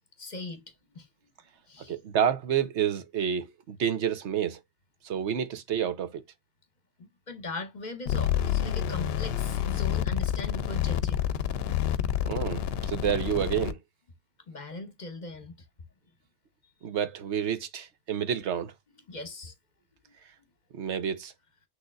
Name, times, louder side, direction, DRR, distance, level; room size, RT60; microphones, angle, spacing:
voice 1, 0.2-0.6 0.9-1.1 1.7-1.9 7.0-11.2 14.5-15.5 19.1-19.5 20.1-20.2, left 2 dB, 40° left, 1.0 m, -39 dB
voice 2, 1.9-4.6 5.0-6.2 12.2-13.8 16.8-18.7 20.7-21.3, right 8 dB, 75° right, 1.1 m, -29 dB
sound 1, 8.1-13.7, left 10 dB, 65° left, 0.8 m, -28 dB
6.3 x 3.2 x 2.4 m
omnidirectional pair, 1.2 m